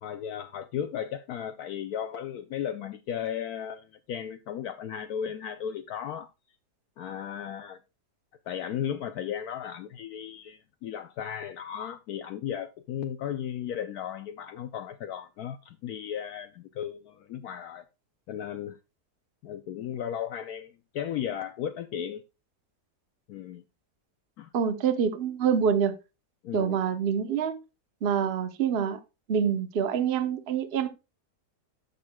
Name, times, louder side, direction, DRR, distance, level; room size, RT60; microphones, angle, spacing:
voice 1, 0.0-6.3 7.0-7.8 8.5-17.8 18.3-18.8 19.4-22.2 23.3-23.6 24.4-24.5 26.4-26.8, left 9 dB, 70° left, 1.1 m, -35 dB
voice 2, 24.5-25.9 26.5-27.6 28.0-29.0 29.3-30.9, right 7 dB, 45° right, 0.9 m, -26 dB
13.0 x 6.6 x 2.2 m
omnidirectional pair, 1.8 m